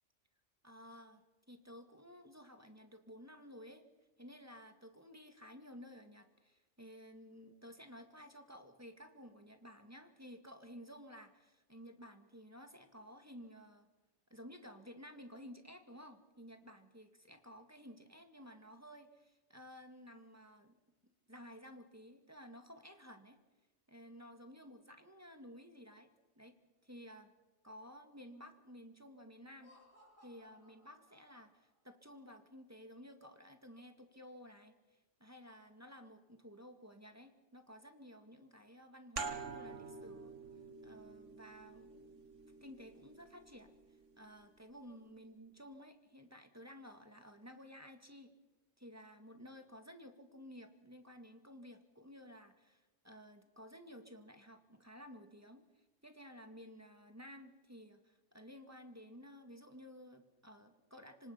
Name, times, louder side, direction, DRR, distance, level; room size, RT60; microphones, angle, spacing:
voice 1, 0.6-1.2 1.5-3.8 4.2-13.9 14.3-20.8 21.3-23.4 23.9-26.1 26.4-26.6 26.8-27.3 27.6-29.7 30.2-40.3 40.8-42.1 42.6-43.8 44.2-48.3 48.8-61.3, equal, 15° right, 6 dB, 2.0 m, -54 dB
Laughter, 29.4-31.8, left 1 dB, 25° left, 6.7 m, -65 dB
sound 1, 39.2-44.4, right 4 dB, 85° right, 1.9 m, -48 dB
27.0 x 25.5 x 5.8 m, 1.1 s
omnidirectional pair, 1.2 m